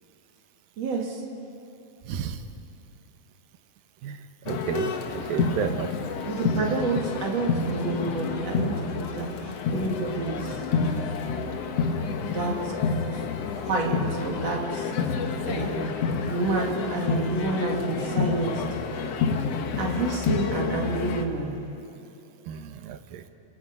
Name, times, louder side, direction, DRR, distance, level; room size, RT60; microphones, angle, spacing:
voice 1, 0.8-1.2 6.2-10.5 12.2-12.5 13.6-14.8 15.5-15.9 16.3-18.6 19.8-21.5, right 3 dB, 45° right, 0 dB, 3.3 m, -29 dB
voice 2, 2.1-2.4 4.0-4.2 4.5-4.9 5.3-5.9 22.5-23.2, right 9 dB, 75° right, 8 dB, 2.7 m, -31 dB
sound 1, 4.5-21.3, left 5 dB, 60° left, 1.7 m, -29 dB
28.0 x 28.0 x 5.3 m, 2.8 s
omnidirectional pair, 4.2 m